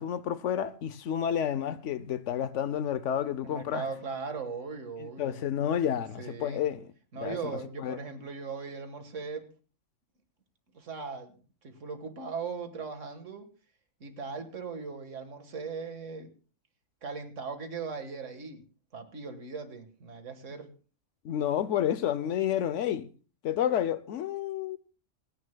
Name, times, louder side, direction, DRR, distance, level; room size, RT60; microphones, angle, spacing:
voice 1, 0.0-3.8 5.0-6.8 7.1-8.0 21.2-23.1 23.4-24.8, left 10 dB, 70° left, 1.0 m, -30 dB
voice 2, 3.4-5.4 6.2-6.6 7.1-9.5 10.7-11.4 11.6-13.5 14.0-16.3 17.0-18.6 18.9-20.7, right 5 dB, 75° right, 1.9 m, -39 dB
27.0 x 9.8 x 2.2 m
omnidirectional pair, 1.3 m